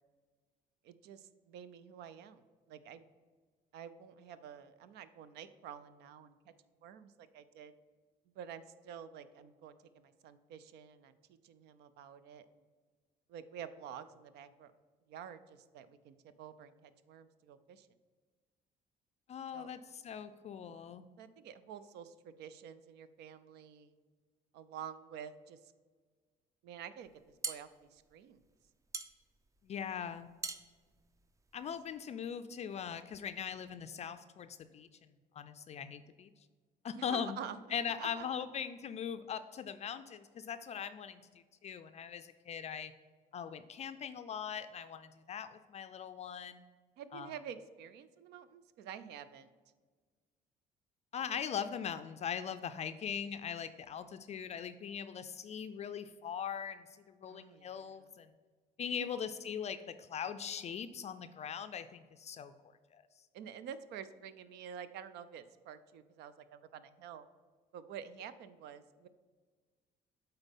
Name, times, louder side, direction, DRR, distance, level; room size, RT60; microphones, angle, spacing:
voice 1, 0.8-3.0 3.7-6.5 6.8-7.7 8.4-12.5 13.3-14.7 15.1-17.9 19.5-19.7 21.2-23.9 24.5-25.7 26.6-27.1 27.5-28.4 37.0-37.6 38.0-38.3 47.0-49.5 57.3-58.1 59.0-59.2 63.3-67.3 67.7-69.1, right 8 dB, 85° right, 14 dB, 0.5 m, -49 dB
voice 2, 19.3-21.0 29.6-30.3 31.5-34.5 34.7-34.9 35.4-36.3 36.8-37.4 37.7-41.2 41.6-42.9 43.3-46.6 47.1-47.3 51.1-58.3 58.8-62.5 62.9-63.0, left 7 dB, 40° left, 10 dB, 0.4 m, -40 dB
sound 1, 27.1-32.0, right 4 dB, 20° right, 0.5 m, -44 dB
8.1 x 4.0 x 5.3 m, 1.5 s
cardioid pair, 110°, 17 cm